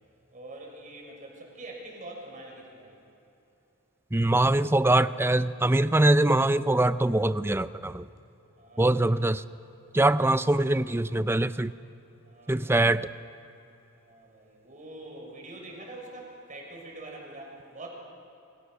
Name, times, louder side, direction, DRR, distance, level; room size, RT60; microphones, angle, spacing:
voice 1, 0.3-3.0 8.6-9.2 12.2-12.9 13.9-17.9, right 2 dB, 35° right, -1 dB, 6.4 m, -45 dB
voice 2, 4.1-8.1 8.8-9.4 9.9-11.7 12.5-13.1, right 1 dB, 10° right, 14 dB, 0.5 m, -23 dB
28.5 x 25.5 x 6.5 m, 2.9 s
head